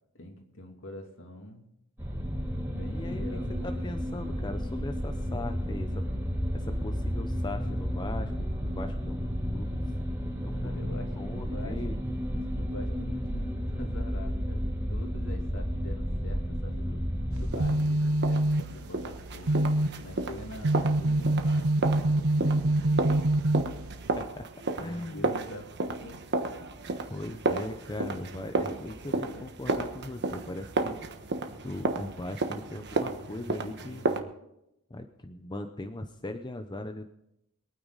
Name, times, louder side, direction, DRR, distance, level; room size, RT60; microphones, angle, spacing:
voice 1, 0.1-1.7 2.7-3.8 10.5-11.8 12.3-14.6 14.9-17.0 17.4-19.7 20.0-23.1 24.7-26.2 29.0-29.5, left 1 dB, 60° left, 2 dB, 2.7 m, -45 dB
sound 1, 2.0-17.7, equal, 15° right, 4.2 m, -32 dB
voice 2, 2.9-3.2 3.6-6.0 6.5-9.8 10.4-12.0 24.3-24.5 24.8-25.3 27.1-31.0 31.6-34.1 34.9-37.1, left 2 dB, 20° left, 6 dB, 0.7 m, -39 dB
sound 2, 17.3-24.2, right 1 dB, 75° right, 0.8 m, -26 dB
sound 3, 17.5-34.2, right 2 dB, 50° right, 1.3 m, -33 dB
23.5 x 9.4 x 4.0 m, 0.82 s
head